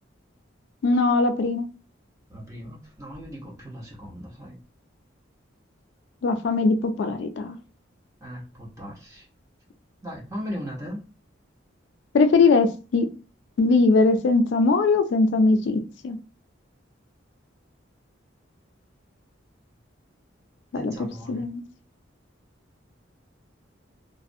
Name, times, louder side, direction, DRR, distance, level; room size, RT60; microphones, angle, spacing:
voice 1, 0.8-1.7 6.2-7.6 12.1-13.1 13.6-16.2 20.7-20.9 21.3-21.6, left 3 dB, 65° left, 0.3 m, -20 dB
voice 2, 2.3-4.6 8.2-9.3 10.0-11.0 20.7-21.5, equal, 15° right, 0.7 m, -37 dB
2.4 x 2.0 x 2.5 m
head